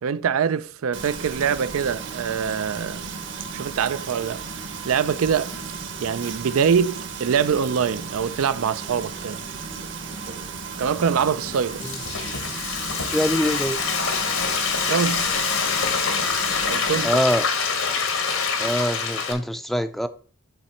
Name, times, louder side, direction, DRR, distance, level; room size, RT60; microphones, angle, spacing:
voice 1, 0.0-3.0 3.5-4.4 4.8-5.5 6.0-9.4 10.8-11.9 14.9-15.3 16.6-17.2, right 7 dB, 90° right, 0.4 m, -24 dB
Frying (food), 0.9-17.0, right 5 dB, 60° right, 1.2 m, -35 dB
Frying (food) 2, 11.5-19.3, left 5 dB, 90° left, 1.5 m, -25 dB
voice 2, 13.1-13.8 17.0-17.4 18.6-20.1, equal, ahead, 0.4 m, -24 dB
10.5 x 4.1 x 4.3 m
head